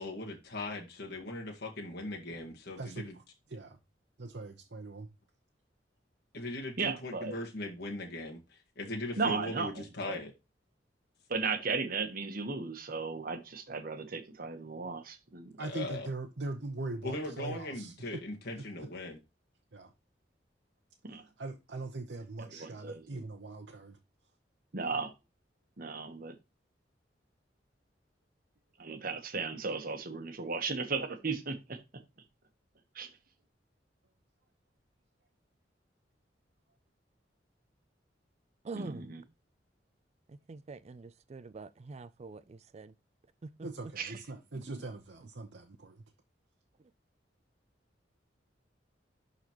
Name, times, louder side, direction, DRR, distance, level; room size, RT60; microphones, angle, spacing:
voice 1, 0.0-3.1 6.3-10.3 15.6-16.1 17.0-19.2, left 1 dB, 65° left, 1.7 m, -39 dB
voice 2, 2.8-3.2 3.5-3.8 4.2-5.1 15.6-18.2 19.7-19.9 21.4-24.0 43.6-46.0, right 2 dB, 75° right, 0.9 m, -41 dB
voice 3, 6.8-7.4 9.2-10.2 11.3-15.5 21.0-21.2 22.4-23.2 24.7-25.1 25.8-26.3 28.8-31.8 32.9-33.1 38.7-39.2 44.0-44.1, right 4 dB, 55° right, 1.3 m, -36 dB
voice 4, 38.6-39.1 40.3-42.9 43.4-43.7, right 3 dB, 35° right, 0.4 m, -45 dB
11.5 x 4.0 x 3.0 m
head